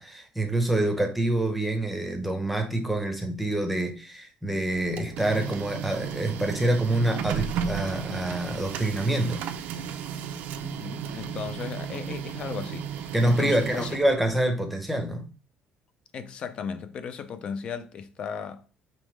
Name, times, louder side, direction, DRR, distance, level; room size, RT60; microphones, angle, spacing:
voice 1, 0.0-9.4 13.1-15.3, right 1 dB, ahead, 0.7 m, -26 dB
Printer, 4.7-14.5, right 8 dB, 65° right, 0.5 m, -34 dB
voice 2, 10.6-14.0 16.1-18.7, left 7 dB, 40° left, 0.4 m, -36 dB
5.2 x 3.2 x 3.2 m
cardioid pair, 170°, 3 cm